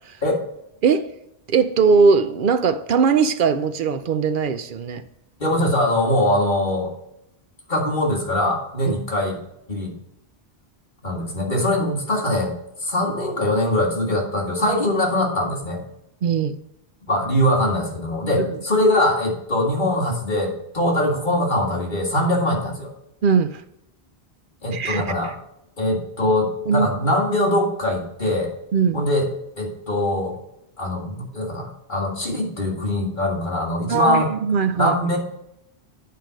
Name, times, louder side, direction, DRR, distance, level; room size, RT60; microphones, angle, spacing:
voice 1, 1.5-5.0 8.9-9.0 16.2-16.6 18.4-18.5 23.2-23.6 24.7-25.0 26.7-26.9 28.7-29.0 33.9-34.9, right 5 dB, 60° right, 0.7 m, -19 dB
voice 2, 5.4-6.9 7.7-9.4 9.7-9.9 11.0-12.5 12.8-15.8 17.1-22.9 24.6-25.3 25.8-28.5 28.9-29.3 29.6-30.4 30.8-34.3 34.7-35.2, left 1 dB, 50° left, 2.1 m, -22 dB
9.3 x 4.7 x 5.1 m
omnidirectional pair, 1.1 m